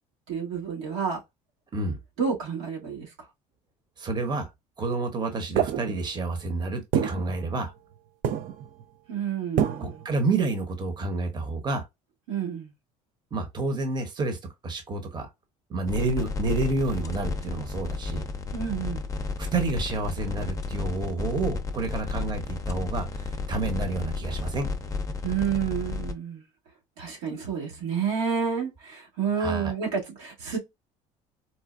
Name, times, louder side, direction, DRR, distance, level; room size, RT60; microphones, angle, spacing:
voice 1, 0.3-1.2 2.2-3.1 9.1-10.0 12.3-12.7 18.5-19.1 25.2-26.4 27.0-30.6, right 7 dB, 90° right, 1.8 m, -29 dB
voice 2, 4.0-4.5 4.8-7.7 9.8-11.8 13.3-15.3 15.7-18.2 19.4-24.7 29.4-29.7, right 3 dB, 30° right, 1.0 m, -29 dB
sound 1, 5.6-6.3 6.9-8.0 8.2-8.8 9.6-10.1, right 9 dB, 60° right, 0.6 m, -28 dB
sound 2, 15.9-26.1, left 4 dB, 20° left, 0.6 m, -32 dB
4.2 x 2.2 x 2.5 m
supercardioid pair, 95°, 15 cm